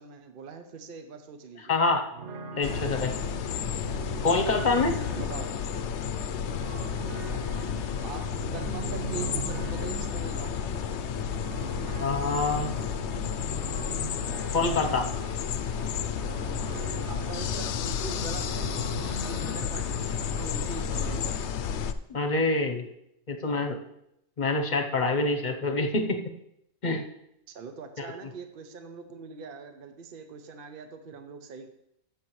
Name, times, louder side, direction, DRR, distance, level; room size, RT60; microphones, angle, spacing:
voice 1, 0.0-1.8 5.2-5.5 8.0-8.2 8.5-10.8 14.3-14.4 17.1-18.7 19.2-21.4 27.5-31.7, right 5 dB, 55° right, 7 dB, 0.9 m, -42 dB
voice 2, 1.7-2.0 2.5-3.2 4.2-5.0 12.0-12.7 14.5-15.1 22.1-22.9 23.3-23.8 24.4-26.2 26.8-27.0 28.0-28.1, left 3 dB, 45° left, 4 dB, 1.0 m, -26 dB
sound 1, 2.1-21.3, right 4 dB, 85° right, 1.1 m, -41 dB
sound 2, 2.6-21.9, left 7 dB, 80° left, 0.8 m, -32 dB
13.0 x 6.9 x 3.1 m, 0.79 s
omnidirectional pair, 1.2 m